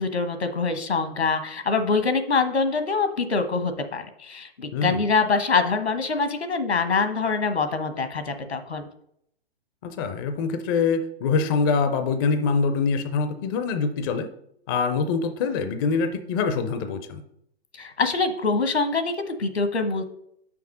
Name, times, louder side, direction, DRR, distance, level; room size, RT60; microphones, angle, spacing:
voice 1, 0.0-8.9 17.8-20.1, left 4 dB, 85° left, 9 dB, 1.2 m, -24 dB
voice 2, 9.8-14.3 14.7-17.2, left 5 dB, 20° left, 10 dB, 0.4 m, -24 dB
5.9 x 5.1 x 6.3 m, 0.71 s
figure-of-eight pair, 120°, 32 cm